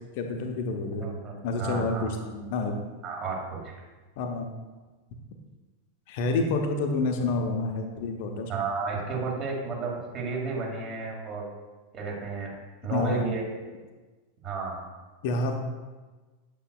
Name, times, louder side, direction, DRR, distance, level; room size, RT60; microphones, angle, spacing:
voice 1, 0.2-1.1 1.4-2.8 4.2-4.5 6.1-8.5 12.9-13.2 15.2-15.5, left 3 dB, 50° left, 4 dB, 0.7 m, -28 dB
voice 2, 1.0-1.3 1.6-2.1 3.0-3.7 8.5-11.5 11.9-12.5 12.8-13.5 14.4-14.8, right 4 dB, 30° right, -1 dB, 2.0 m, -32 dB
8.2 x 7.7 x 2.3 m, 1.3 s
figure-of-eight pair, 90°, 0 cm